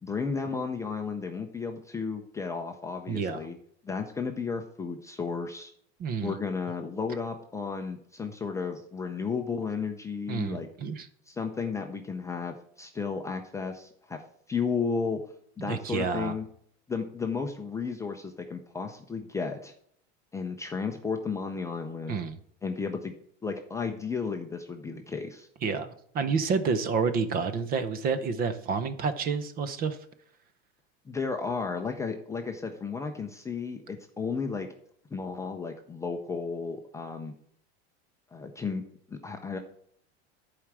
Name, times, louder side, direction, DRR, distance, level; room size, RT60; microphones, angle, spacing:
voice 1, 0.0-3.6 3.8-5.7 6.2-10.7 11.3-14.2 14.5-15.2 15.6-16.5 16.9-19.7 20.3-22.2 22.6-23.1 23.4-25.5 31.1-34.7 35.1-37.3 38.3-38.8 39.1-39.6, left 5 dB, 10° left, 3 dB, 0.5 m, -33 dB
voice 2, 3.1-3.4 6.0-6.4 10.3-11.1 15.6-16.4 22.1-22.4 24.9-25.0 25.6-30.0, right 5 dB, 25° right, 12 dB, 0.7 m, -29 dB
11.0 x 4.9 x 7.3 m, 0.65 s
supercardioid pair, 165°, 34 cm